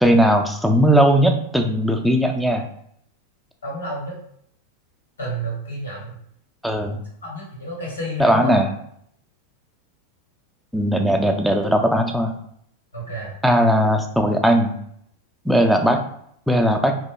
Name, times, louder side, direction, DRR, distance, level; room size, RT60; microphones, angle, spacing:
voice 1, 0.0-2.7 6.6-7.0 8.2-8.7 10.7-12.3 13.4-14.7 15.5-16.0 16.5-17.0, equal, ahead, 3 dB, 0.3 m, -18 dB
voice 2, 3.6-4.1 5.2-6.2 7.2-8.6 12.9-13.3, right 1 dB, 85° left, -4 dB, 1.0 m, -30 dB
2.7 x 2.1 x 2.3 m, 0.68 s
hypercardioid pair, 95°, 0 cm